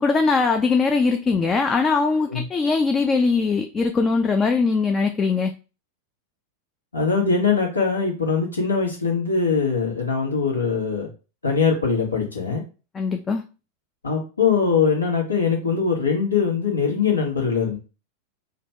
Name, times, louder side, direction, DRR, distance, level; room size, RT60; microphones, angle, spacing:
voice 1, 0.0-5.5 12.9-13.4, left 4 dB, 20° left, 0.4 m, -21 dB
voice 2, 6.9-11.1 11.4-12.6 14.0-17.8, left 5 dB, 75° left, 1.3 m, -22 dB
3.3 x 2.3 x 4.2 m
figure-of-eight pair, 90°, 0 cm